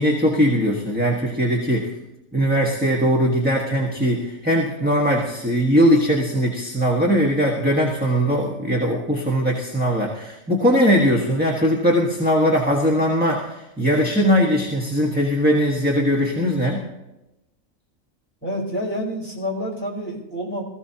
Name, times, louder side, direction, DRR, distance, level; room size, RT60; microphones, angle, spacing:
voice 1, 0.0-1.9 2.3-16.8, equal, 5° right, -3 dB, 1.3 m, -20 dB
voice 2, 18.4-20.6, equal, 10° left, -6 dB, 4.1 m, -28 dB
20.0 x 15.0 x 2.8 m, 0.96 s
omnidirectional pair, 1.4 m